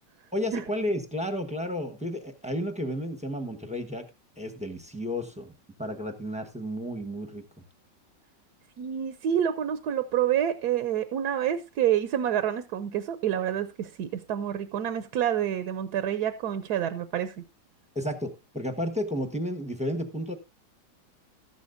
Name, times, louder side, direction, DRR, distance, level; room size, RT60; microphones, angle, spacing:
voice 1, 0.3-4.0 4.4-5.5 5.8-7.4 17.9-20.4, equal, 5° right, 5 dB, 0.9 m, -32 dB
voice 2, 8.8-17.4, right 10 dB, 65° right, 11 dB, 1.2 m, -28 dB
14.0 x 11.5 x 2.6 m, 0.25 s
omnidirectional pair, 2.0 m